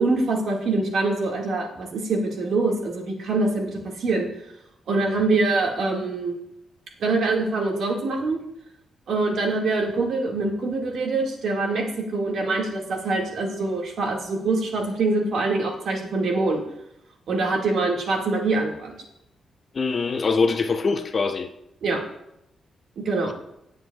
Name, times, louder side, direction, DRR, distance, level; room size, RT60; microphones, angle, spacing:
voice 1, 0.0-4.3 4.9-6.4 7.0-8.4 9.1-16.6 17.3-18.9 21.8-22.0 23.0-23.3, right 3 dB, 60° right, 1.9 m, -24 dB
voice 2, 19.7-21.5, left 4 dB, 30° left, 0.6 m, -23 dB
17.5 x 8.0 x 2.3 m
wide cardioid pair, 180°, 0 cm